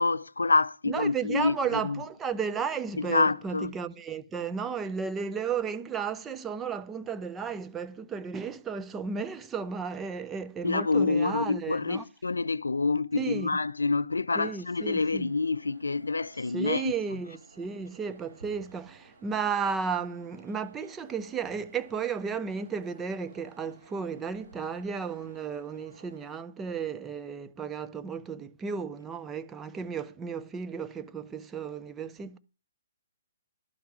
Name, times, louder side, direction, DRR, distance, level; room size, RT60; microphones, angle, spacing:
voice 1, 0.0-2.0 3.0-3.7 10.6-16.9, left 3 dB, 75° left, 0.4 m, -27 dB
voice 2, 0.9-12.0 13.1-13.5 14.3-15.3 16.5-32.4, right 6 dB, 15° right, 0.6 m, -34 dB
sound 1, 14.6-26.3, right 3 dB, 70° right, 6.2 m, -56 dB
11.5 x 5.9 x 4.8 m
figure-of-eight pair, 130°, 0 cm